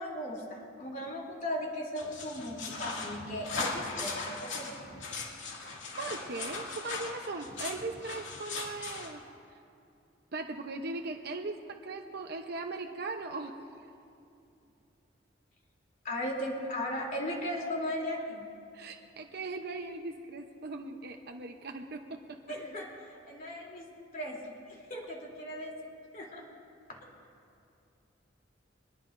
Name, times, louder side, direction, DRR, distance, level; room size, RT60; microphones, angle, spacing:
voice 1, 0.0-4.8 16.0-18.5 22.5-23.8 24.1-25.7 26.1-26.4 26.9-27.0, left 1 dB, 45° left, -2 dB, 3.2 m, -37 dB
sound 1, 2.0-9.1, left 3 dB, 90° left, 2.3 m, -39 dB
voice 2, 6.0-9.2 10.3-13.5 18.7-22.4, right 3 dB, 60° right, 3 dB, 0.9 m, -39 dB
23.0 x 20.5 x 2.6 m, 2.6 s
head